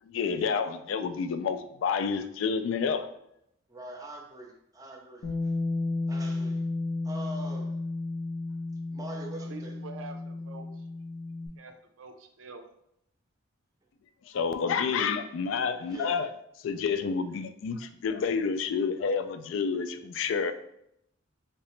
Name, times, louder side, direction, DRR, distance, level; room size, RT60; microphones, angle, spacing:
voice 1, 0.1-3.1 14.3-16.3 16.6-20.5, left 5 dB, 65° left, 10 dB, 0.3 m, -29 dB
voice 2, 3.7-5.5 6.1-6.6 7.0-7.8 8.9-9.8 15.8-16.2, right 2 dB, 20° right, 0 dB, 0.6 m, -43 dB
Bass guitar, 5.2-11.5, left 2 dB, 90° left, 0.7 m, -33 dB
voice 3, 9.4-11.1 11.6-12.7, right 3 dB, 90° right, 6 dB, 0.5 m, -46 dB
3.1 x 2.9 x 3.1 m, 0.76 s
head